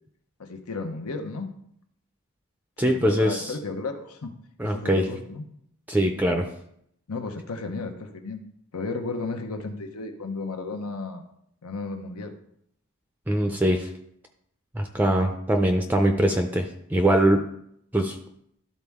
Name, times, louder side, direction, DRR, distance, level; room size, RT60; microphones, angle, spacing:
voice 1, 0.4-1.5 2.8-4.3 4.6-5.4 7.1-8.4 8.7-11.3 11.6-12.3, left 3 dB, 90° left, 6 dB, 0.9 m, -33 dB
voice 2, 2.8-3.5 4.6-5.1 5.9-6.4 13.3-13.9 14.7-17.4 17.9-18.2, right 1 dB, 10° right, 3 dB, 0.4 m, -22 dB
12.5 x 4.2 x 3.6 m, 0.73 s
head